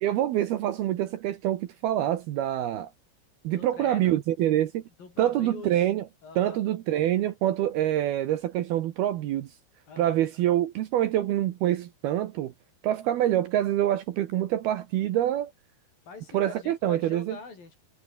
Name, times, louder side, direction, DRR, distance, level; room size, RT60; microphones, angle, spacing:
voice 1, 0.0-2.9 3.4-4.8 5.2-6.0 6.4-9.5 10.0-12.5 12.8-15.5 16.3-17.4, right 12 dB, 70° right, 2.8 m, -26 dB
voice 2, 3.5-4.2 5.0-5.7 6.2-6.6 9.9-10.2 16.1-17.8, left 4 dB, 50° left, 7.8 m, -43 dB
omnidirectional pair, 5.3 m